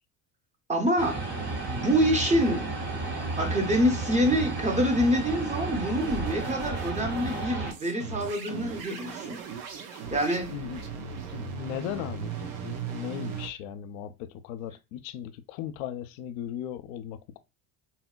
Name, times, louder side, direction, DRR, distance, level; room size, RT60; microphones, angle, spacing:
voice 1, 0.7-1.3 1.7-2.7 3.4-9.5 10.1-10.5, equal, 15° right, 0.7 m, -26 dB
sound 1, 1.0-7.7, right 3 dB, 50° right, 1.7 m, -33 dB
sound 2, 6.0-13.5, right 6 dB, 85° right, 0.8 m, -38 dB
voice 2, 10.5-11.0 11.3-17.4, left 10 dB, 75° left, 0.5 m, -37 dB
4.0 x 2.1 x 2.2 m
hypercardioid pair, 85°, 42 cm